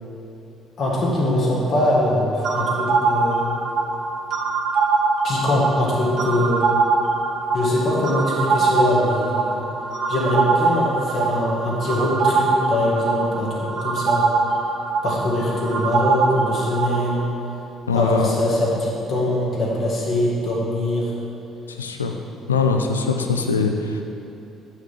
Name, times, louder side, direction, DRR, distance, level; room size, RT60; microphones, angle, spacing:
voice 1, 0.8-3.5 5.2-6.7 7.5-9.7 10.1-14.2 15.0-17.2 17.9-21.1, left 1 dB, 45° left, -5 dB, 1.9 m, -22 dB
sound 1, 2.4-17.2, right 4 dB, 55° right, 0.6 m, -23 dB
voice 2, 17.9-18.3 21.7-22.1 22.5-24.0, left 4 dB, 85° left, 5 dB, 0.4 m, -22 dB
8.1 x 4.3 x 6.2 m, 2.9 s
figure-of-eight pair, 50°, 0 cm